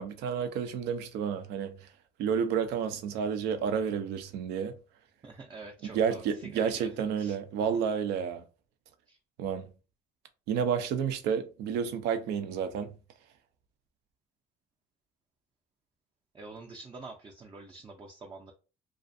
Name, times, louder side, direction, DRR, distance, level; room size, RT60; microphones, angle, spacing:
voice 1, 0.0-1.9 2.2-4.7 5.9-8.4 9.4-9.6 10.5-12.9, right 7 dB, 80° right, 0.5 m, -30 dB
voice 2, 5.2-7.4 9.1-9.2 16.3-18.5, right 3 dB, 25° right, 0.5 m, -47 dB
2.4 x 2.4 x 2.5 m
supercardioid pair, 80°, 17 cm